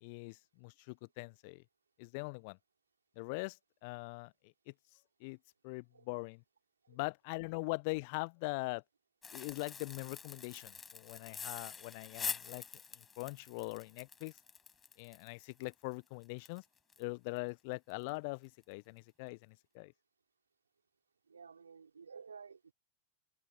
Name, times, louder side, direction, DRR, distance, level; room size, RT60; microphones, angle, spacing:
voice 1, 0.0-1.6 2.0-2.6 3.2-4.7 5.2-5.4 5.6-6.4 6.9-8.8 9.3-12.6 13.0-14.4 15.0-16.6 17.0-19.9, left 30 dB, 45° left, 1.1 m, -42 dB
sound 1, 9.2-17.0 17.4-17.5 17.9-18.1 18.4-18.6, left 6 dB, 20° left, 7.5 m, -46 dB
voice 2, 21.3-22.7, right 6 dB, 75° right, 5.4 m, -53 dB
figure-of-eight pair, 90°, 0 cm